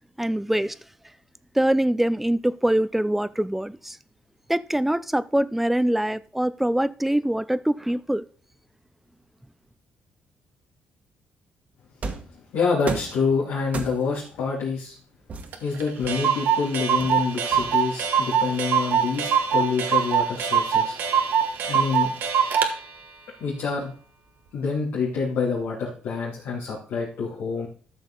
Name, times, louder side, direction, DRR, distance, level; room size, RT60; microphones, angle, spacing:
voice 1, 0.2-0.8 1.5-4.0 4.5-8.2, right 1 dB, 5° right, 0.4 m, -23 dB
sound 1, 12.0-12.4 12.9-13.2 13.7-14.2 15.3-16.4 17.0-18.0, right 4 dB, 50° right, 1.6 m, -34 dB
voice 2, 12.5-15.0 15.6-21.0 21.7-22.1 23.4-23.9 24.5-27.7, left 5 dB, 85° left, 2.6 m, -27 dB
Clock, 15.5-15.6 15.8-15.9 16.1-22.7, right 7 dB, 80° right, 1.2 m, -23 dB
12.5 x 6.3 x 3.8 m
cardioid pair, 85°, 3 cm